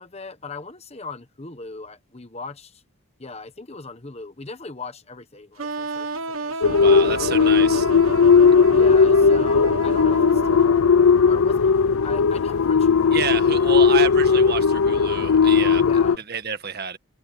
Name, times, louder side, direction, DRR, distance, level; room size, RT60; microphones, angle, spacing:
voice 1, 0.0-2.8 3.2-6.6 7.1-7.9 8.7-13.5 15.8-16.2, left 3 dB, 30° left, 1.1 m, -39 dB
sound 1, 5.6-11.4, right 3 dB, 70° right, 1.3 m, -31 dB
sound 2, 6.6-16.2, left 5 dB, 75° left, 0.5 m, -17 dB
voice 2, 6.8-7.9 13.1-15.8 16.3-17.0, right 6 dB, 45° right, 1.8 m, -29 dB
head